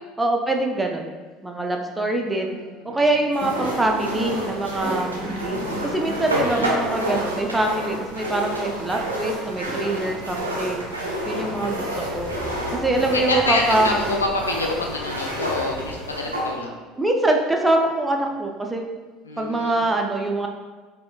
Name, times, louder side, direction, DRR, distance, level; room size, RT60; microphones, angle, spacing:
voice 1, 0.2-1.1 1.4-2.5 2.8-5.6 5.9-12.3 12.7-13.9 17.0-18.8 19.4-20.5, right 2 dB, 10° right, 2 dB, 0.4 m, -24 dB
voice 2, 2.2-3.0 6.4-6.7 13.0-16.8 19.2-19.8, left 2 dB, 85° left, 1 dB, 0.3 m, -27 dB
Thunder, 2.6-2.7 3.0-11.8 12.0-16.4 16.6-16.8 17.9-18.6, equal, 10° left, 0.9 m, -39 dB
sound 1, 3.3-16.5, right 1 dB, 90° right, 0.5 m, -29 dB
sound 2, 8.6-15.9, left 1 dB, 40° left, 0.6 m, -39 dB
4.2 x 2.2 x 2.2 m, 1.3 s
figure-of-eight pair, 65°, 0 cm